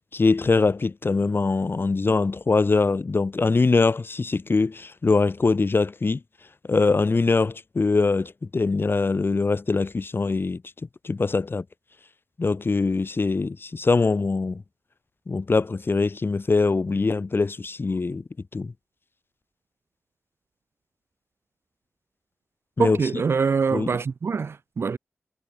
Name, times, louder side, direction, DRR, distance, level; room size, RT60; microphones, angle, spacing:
voice 1, 0.1-6.2 6.7-10.6 11.0-11.6 12.4-14.6 15.3-18.2 18.5-18.7 22.8-23.0 23.7-23.9, left 3 dB, 45° left, 1.2 m, -22 dB
voice 2, 22.8-25.0, right 5 dB, 55° right, 0.3 m, -24 dB
cardioid pair, 45°, 5 cm